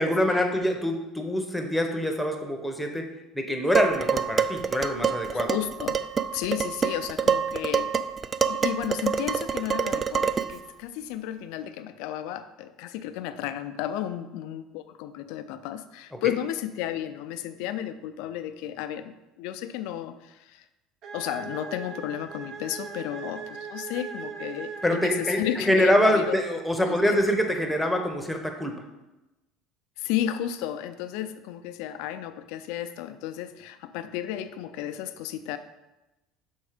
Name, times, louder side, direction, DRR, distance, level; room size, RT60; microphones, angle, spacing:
voice 1, 0.0-5.5 16.1-16.2 24.8-28.8, equal, ahead, 3 dB, 0.9 m, -25 dB
Dishes pots and pans, 3.7-10.6, right 6 dB, 30° right, 0.3 m, -26 dB
voice 2, 5.3-6.0 6.3-7.9 8.5-20.6 21.1-27.3 30.0-35.6, left 11 dB, 75° left, 10 dB, 0.5 m, -33 dB
sound 1, 21.0-25.9, right 6 dB, 55° right, 0.7 m, -39 dB
6.2 x 4.4 x 5.0 m, 1.0 s
supercardioid pair, 115°, 0 cm